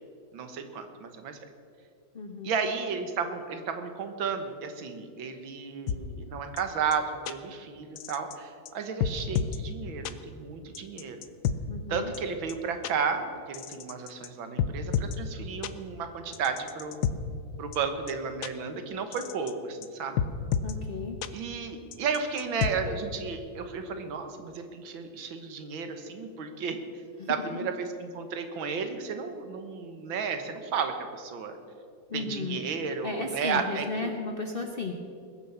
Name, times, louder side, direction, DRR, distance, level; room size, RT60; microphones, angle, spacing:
voice 1, 0.3-1.4 2.4-11.2 11.9-17.0 17.6-20.2 21.3-26.8 27.3-31.6 32.1-33.9, right 5 dB, 80° right, 7 dB, 2.0 m, -33 dB
voice 2, 2.1-2.5 11.7-12.1 20.6-21.2 27.2-27.7 32.1-32.6 33.0-34.9, left 3 dB, 40° left, 3 dB, 0.8 m, -34 dB
sound 1, 5.9-6.0 6.6-6.7 6.9-7.0 7.3-7.4 8.0-8.4 8.7-8.8 9.0-9.6 10.0-10.1 10.7-11.6 12.1-12.2 12.5-12.6 12.8-12.9 13.5-14.3 14.6-15.2 15.6-15.7 16.3-17.1 17.7-17.8 18.1-18.2 18.4-18.5 19.1-19.5 19.8-19.9 20.2-20.7 21.2-21.3 21.9-22.7, left 8 dB, 65° left, 1.1 m, -29 dB
20.5 x 6.9 x 7.0 m, 2.4 s
omnidirectional pair, 2.1 m